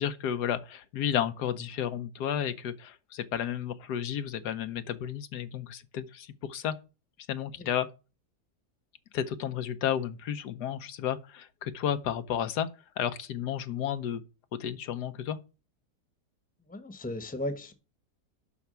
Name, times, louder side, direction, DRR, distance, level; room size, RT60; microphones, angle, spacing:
voice 1, 0.0-6.7 7.3-7.9 9.1-12.7 13.0-14.2 14.5-15.4, left 9 dB, 90° left, 1.4 m, -32 dB
voice 2, 16.7-17.7, left 1 dB, 5° left, 0.9 m, -35 dB
7.0 x 5.8 x 6.8 m
omnidirectional pair, 1.7 m